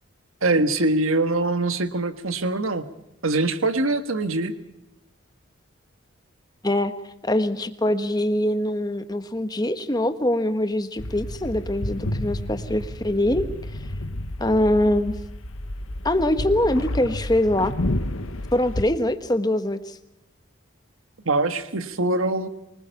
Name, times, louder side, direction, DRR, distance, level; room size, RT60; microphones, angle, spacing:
voice 1, 0.4-2.8 3.2-4.5 21.2-22.5, right 2 dB, 85° right, 10 dB, 1.6 m, -23 dB
voice 2, 6.6-13.5 14.4-15.1 16.0-17.7 18.5-20.0, left 1 dB, 20° left, 10 dB, 1.2 m, -23 dB
sound 1, 11.0-18.9, left 1 dB, 85° left, 1.4 m, -31 dB
24.0 x 20.0 x 5.8 m, 0.91 s
head